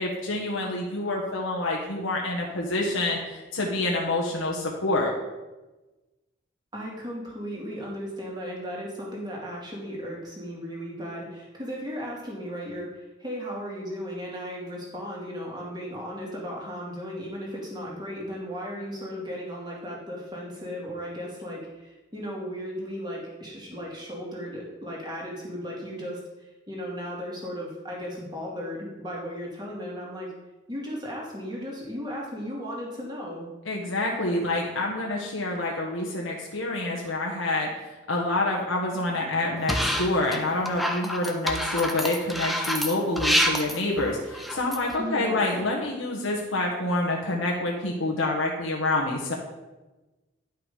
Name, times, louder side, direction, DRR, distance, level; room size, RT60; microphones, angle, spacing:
voice 1, 0.0-5.1 33.6-37.7 38.1-49.3, left 2 dB, 90° left, -2 dB, 1.4 m, -27 dB
voice 2, 6.7-30.3 30.7-33.5 45.0-45.4, equal, 20° right, -3 dB, 2.4 m, -36 dB
sound 1, 39.7-40.4 40.7-44.9, equal, ahead, 0.6 m, -27 dB
10.5 x 5.9 x 5.1 m, 1.1 s
head